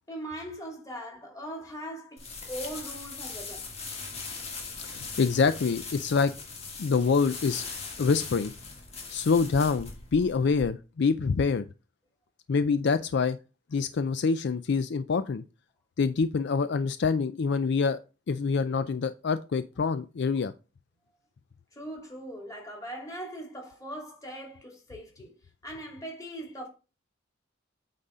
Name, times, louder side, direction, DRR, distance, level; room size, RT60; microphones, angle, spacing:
voice 1, 0.1-3.6 21.7-25.3 25.6-26.7, right 1 dB, 20° left, 2.6 m, -40 dB
sound 1, 2.2-10.6, left 4 dB, 35° left, 2.2 m, -40 dB
voice 2, 4.8-6.3 6.8-7.6 8.0-8.5 9.1-11.7 12.5-13.4 13.7-15.4 16.0-18.0 18.3-20.5, left 5 dB, 60° left, 0.4 m, -26 dB
8.9 x 4.1 x 4.9 m
head